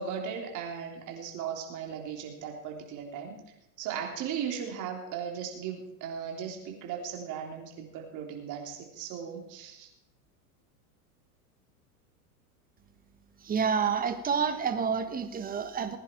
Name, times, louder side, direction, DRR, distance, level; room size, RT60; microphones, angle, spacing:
voice 1, 0.0-3.4 3.8-9.9, right 7 dB, 40° right, 2 dB, 3.6 m, -37 dB
voice 2, 13.4-16.0, right 6 dB, 20° right, 8 dB, 1.4 m, -29 dB
20.0 x 10.5 x 4.6 m, 0.86 s
supercardioid pair, 125°, 45 cm